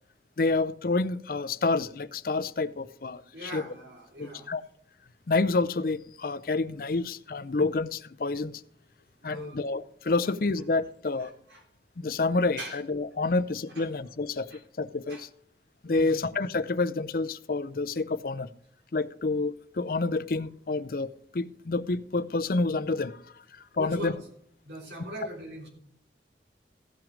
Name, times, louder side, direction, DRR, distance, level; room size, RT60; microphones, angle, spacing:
voice 1, 0.4-3.6 4.2-4.6 5.3-8.6 9.2-11.3 12.0-15.3 15.8-18.5 18.9-23.2 23.5-24.1, left 3 dB, 55° left, 16 dB, 0.5 m, -28 dB
voice 2, 3.3-4.5 9.2-9.7 11.2-11.6 12.6-12.8 13.7-13.9 14.5-14.6 15.1-15.2 15.9-16.2 23.7-24.3 24.6-25.7, right 1 dB, 80° right, 1 dB, 3.3 m, -41 dB
15.5 x 6.0 x 5.1 m, 0.67 s
head